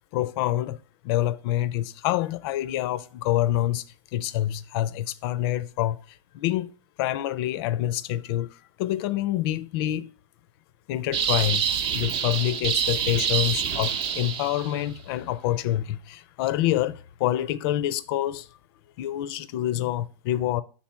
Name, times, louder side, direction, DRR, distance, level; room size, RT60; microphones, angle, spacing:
voice 1, 0.1-0.8 1.0-3.8 4.1-10.1 10.9-11.6 11.9-18.5 19.0-20.6, left 13 dB, 50° left, 0.5 m, -27 dB
sound 1, 11.1-14.8, right 8 dB, 35° right, 0.8 m, -26 dB
6.0 x 4.0 x 4.3 m
hypercardioid pair, 115°, 16 cm